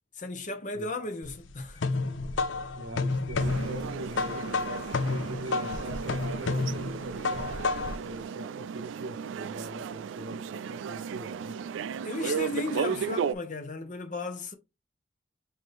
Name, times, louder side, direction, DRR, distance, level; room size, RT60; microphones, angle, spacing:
voice 1, 0.2-2.1 12.0-14.5, left 2 dB, 40° left, 0.8 m, -35 dB
sound 1, 1.2-8.1, left 3 dB, 85° left, 0.5 m, -31 dB
voice 2, 2.8-11.6, right 1 dB, 65° right, 0.7 m, -42 dB
sound 2, 3.4-13.3, right 7 dB, 85° right, 0.3 m, -35 dB
5.9 x 2.7 x 3.4 m
head